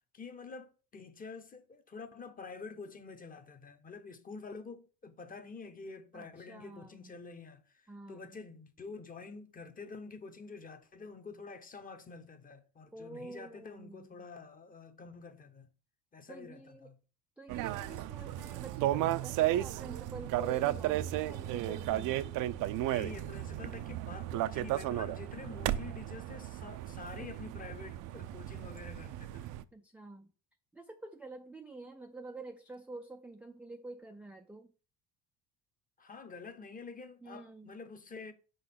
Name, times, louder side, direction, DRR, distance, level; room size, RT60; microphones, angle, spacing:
voice 1, 0.1-15.7 16.1-16.9 22.8-29.5 36.0-38.3, left 4 dB, 25° left, 0.9 m, -48 dB
voice 2, 6.1-7.2 7.9-8.3 12.9-14.2 16.3-16.9 17.4-22.2 29.7-30.3 30.7-34.7 37.2-37.8, right 2 dB, 5° right, 0.4 m, -48 dB
sound 1, 17.5-29.6, right 14 dB, 60° right, 0.5 m, -34 dB
5.9 x 3.9 x 5.7 m
cardioid pair, 115°, 36 cm